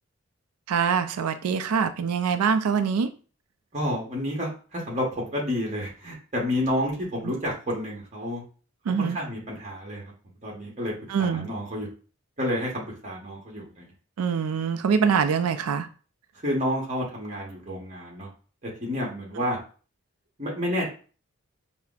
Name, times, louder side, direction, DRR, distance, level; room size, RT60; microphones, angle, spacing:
voice 1, 0.7-3.1 8.9-9.2 11.1-11.5 14.2-15.9, right 6 dB, 90° right, 0.4 m, -24 dB
voice 2, 3.7-8.4 9.0-10.1 10.4-10.9 11.2-11.9 12.4-13.8 16.4-18.3 18.6-19.6 20.4-20.9, equal, 30° right, 1.0 m, -30 dB
5.7 x 2.1 x 2.4 m
head